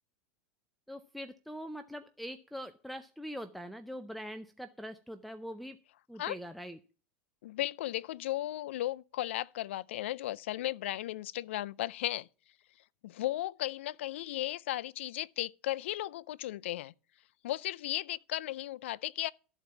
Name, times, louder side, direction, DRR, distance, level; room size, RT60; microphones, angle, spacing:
voice 1, 0.9-5.8 6.1-6.8, equal, ahead, 0.5 m, -43 dB
voice 2, 7.4-12.3 13.0-16.9 17.4-19.3, left 14 dB, 80° left, 0.4 m, -35 dB
13.0 x 4.5 x 7.0 m
supercardioid pair, 140°, 6 cm